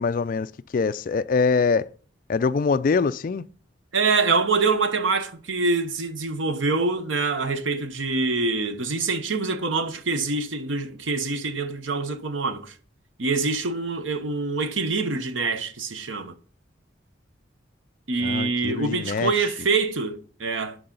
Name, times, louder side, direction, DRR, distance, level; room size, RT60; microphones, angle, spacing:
voice 1, 0.0-1.9 2.3-3.4 18.2-19.3, left 4 dB, 45° left, 0.3 m, -24 dB
voice 2, 3.9-12.7 13.2-16.3 18.1-20.8, right 3 dB, 80° right, 0.9 m, -25 dB
11.0 x 4.7 x 3.9 m
head